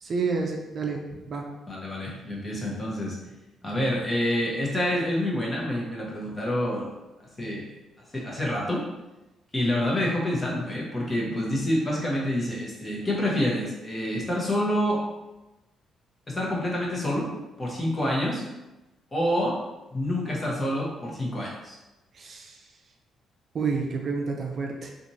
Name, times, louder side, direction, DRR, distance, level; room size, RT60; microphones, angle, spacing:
voice 1, 0.0-1.5 22.1-22.6 23.5-24.9, right 4 dB, 50° right, 1 dB, 0.4 m, -29 dB
voice 2, 1.7-3.2 3.6-6.9 7.2-7.7 8.1-8.8 9.5-15.0 16.3-17.3 17.6-18.4 19.1-19.6 19.9-21.8, left 1 dB, 25° left, -4 dB, 0.9 m, -27 dB
2.9 x 2.5 x 2.7 m, 1.0 s
cardioid pair, 90°, 0 cm